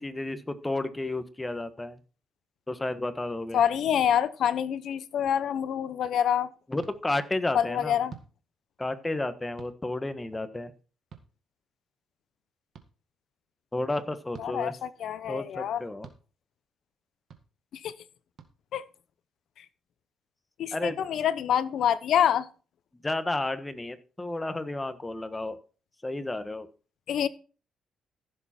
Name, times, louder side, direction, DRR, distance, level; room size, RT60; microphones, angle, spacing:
voice 1, 0.0-2.0 2.7-3.6 6.7-8.0 8.8-10.7 13.7-14.7 15.3-16.1 20.7-21.0 23.0-25.6 26.0-26.7, left 2 dB, 15° left, 1.3 m, -32 dB
voice 2, 3.5-6.5 7.5-8.1 14.4-15.8 17.8-17.9 18.7-18.8 20.6-22.5 27.1-27.3, left 9 dB, 70° left, 0.8 m, -26 dB
sound 1, 6.8-7.0 8.1-8.3 9.6-9.8 11.1-11.3 12.7-12.9 14.3-14.5 16.0-16.2 17.3-17.4 18.4-18.5, right 7 dB, 55° right, 1.9 m, -47 dB
15.0 x 7.4 x 4.4 m
cardioid pair, 90°, 0 cm